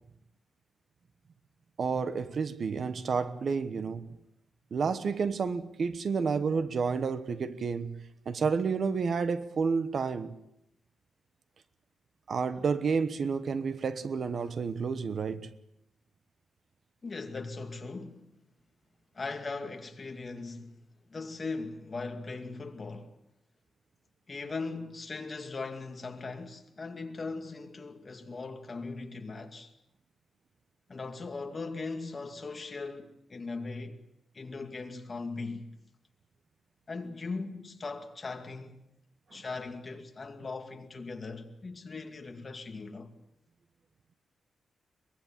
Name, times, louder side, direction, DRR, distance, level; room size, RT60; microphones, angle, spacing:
voice 1, 1.8-4.0 4.7-10.3 12.3-15.5, right 5 dB, 50° right, 1.1 m, -30 dB
voice 2, 17.0-18.3 19.1-20.8 21.1-23.2 24.3-29.7 30.9-34.0 34.3-35.7 36.9-38.8 39.3-43.1, left 3 dB, 30° left, 2.4 m, -39 dB
23.0 x 22.0 x 7.5 m
wide cardioid pair, 140°, 0 cm